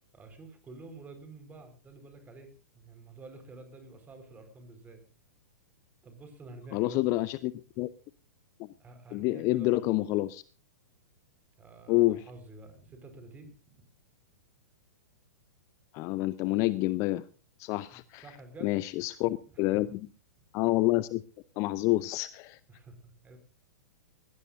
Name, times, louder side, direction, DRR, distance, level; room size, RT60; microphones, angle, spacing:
voice 1, 0.1-5.0 6.0-7.3 8.8-10.0 11.6-13.9 17.7-18.7 19.5-20.0 20.3-20.4 22.7-23.4, right 3 dB, 15° right, 8 dB, 4.7 m, -50 dB
voice 2, 6.7-7.5 7.8-7.9 8.6-8.7 9.1-10.4 11.9-12.2 15.9-17.2 17.6-18.2 18.6-20.1 20.5-21.2 21.6-22.6, left 19 dB, 35° left, 17 dB, 0.7 m, -28 dB
21.0 x 17.0 x 2.6 m, 0.37 s
figure-of-eight pair, 105°, 10 cm